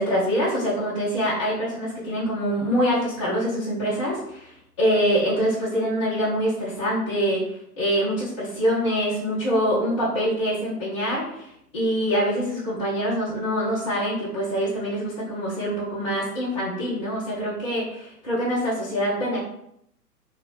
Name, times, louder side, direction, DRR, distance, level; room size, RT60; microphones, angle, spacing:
voice 1, 0.0-7.4 7.8-19.4, equal, 25° left, -10 dB, 0.3 m, -25 dB
2.8 x 2.1 x 2.4 m, 0.75 s
figure-of-eight pair, 120°, 48 cm